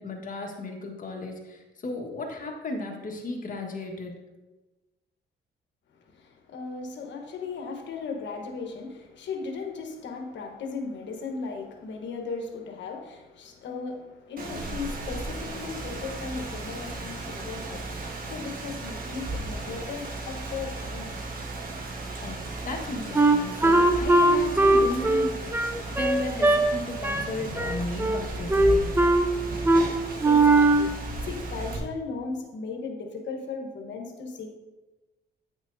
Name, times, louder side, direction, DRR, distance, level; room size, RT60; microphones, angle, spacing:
voice 1, 0.0-4.1 22.2-28.9, left 2 dB, 40° left, 1 dB, 1.5 m, -35 dB
voice 2, 6.1-21.2 30.2-30.9 31.2-34.5, left 4 dB, 65° left, 3 dB, 1.1 m, -37 dB
Rain, 14.4-31.8, right 2 dB, 45° right, 1.4 m, -35 dB
Wind instrument woodwind instrument, 23.1-26.6 27.0-27.3 27.6-28.2 28.5-29.3 29.6-29.9 30.2-30.9, right 2 dB, 10° right, 0.6 m, -20 dB
9.2 x 6.1 x 2.7 m, 1.1 s
cardioid pair, 90°, 20 cm